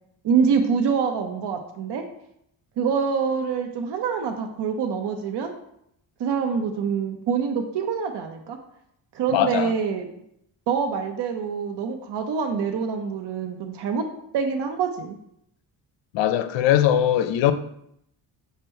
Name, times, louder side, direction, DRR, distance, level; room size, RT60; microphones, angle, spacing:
voice 1, 0.2-2.0 2.8-5.5 6.2-8.6 9.1-10.1 10.7-14.0 14.3-15.2, right 6 dB, 60° right, 0.7 m, -25 dB
voice 2, 9.3-9.7 16.1-17.5, left 11 dB, 70° left, 0.5 m, -20 dB
5.2 x 2.2 x 4.4 m
cardioid pair, 70°, 46 cm